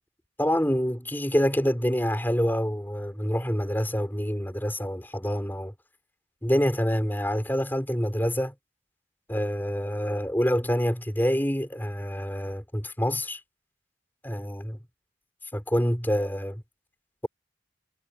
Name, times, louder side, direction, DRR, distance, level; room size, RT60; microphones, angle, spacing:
voice 1, 0.4-5.7 6.4-8.5 9.3-13.4 14.2-14.8 15.5-16.6, equal, 10° left, 4.7 m, -26 dB
head